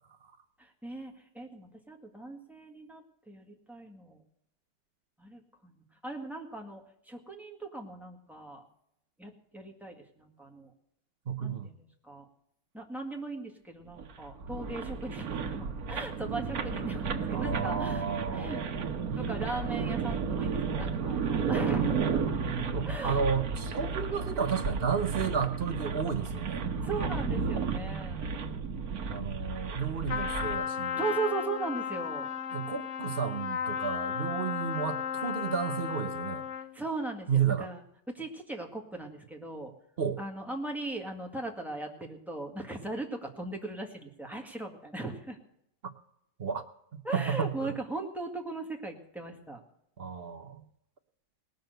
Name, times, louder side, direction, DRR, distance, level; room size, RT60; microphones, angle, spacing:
voice 1, 0.6-4.2 5.2-5.7 6.0-8.7 9.2-10.7 11.4-12.3 12.7-18.1 18.3-18.6 19.1-22.1 22.8-23.3 26.8-28.2 31.0-32.3 36.5-37.8 38.1-39.7 40.2-45.4 47.0-49.6, right 2 dB, ahead, 2 dB, 1.8 m, -38 dB
voice 2, 11.3-11.7 17.3-18.7 22.7-26.6 29.1-31.0 32.5-36.4 37.3-37.7 40.0-40.2 45.8-45.9 46.4-46.6 47.1-47.7 50.0-50.6, right 7 dB, 45° right, 7 dB, 0.9 m, -32 dB
sound 1, 13.9-30.6, right 5 dB, 60° right, 1.5 m, -33 dB
Trumpet, 30.1-36.8, left 8 dB, 60° left, 0.8 m, -34 dB
19.0 x 6.7 x 7.9 m, 0.77 s
omnidirectional pair, 1.8 m